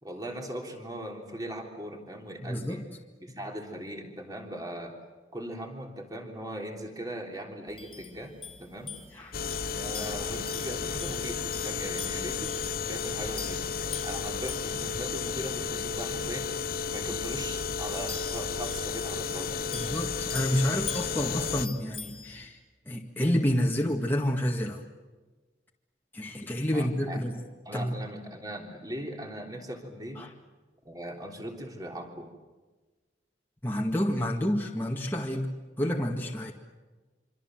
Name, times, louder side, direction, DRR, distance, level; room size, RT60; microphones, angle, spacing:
voice 1, 0.0-2.9 3.2-5.0 5.3-8.9 9.7-12.6 12.9-13.7 14.0-20.0 26.7-27.2 27.7-30.2 30.9-32.3, right 1 dB, 20° right, 2 dB, 3.5 m, -39 dB
voice 2, 2.5-2.8 3.3-3.4 9.2-9.3 19.7-22.6 22.9-24.8 26.1-27.3 27.7-27.9 30.2-30.3 33.6-35.5 35.8-36.5, equal, 10° left, -1 dB, 1.9 m, -29 dB
sound 1, 7.7-22.5, left 5 dB, 25° left, 2.6 m, -45 dB
sound 2, 9.3-21.7, left 6 dB, 50° left, 0.8 m, -33 dB
26.5 x 25.0 x 7.8 m, 1.3 s
head